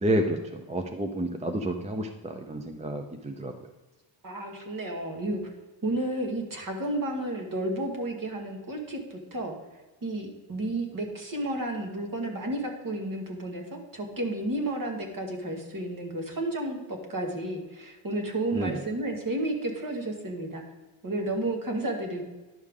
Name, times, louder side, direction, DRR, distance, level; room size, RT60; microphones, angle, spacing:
voice 1, 0.0-3.5 18.5-18.8, right 1 dB, 15° right, 5 dB, 0.4 m, -30 dB
voice 2, 4.2-5.4 5.8-9.6 10.0-20.6 21.0-22.2, right 1 dB, 40° right, 2 dB, 1.6 m, -32 dB
10.5 x 6.5 x 3.6 m, 1.2 s
wide cardioid pair, 160°, 49 cm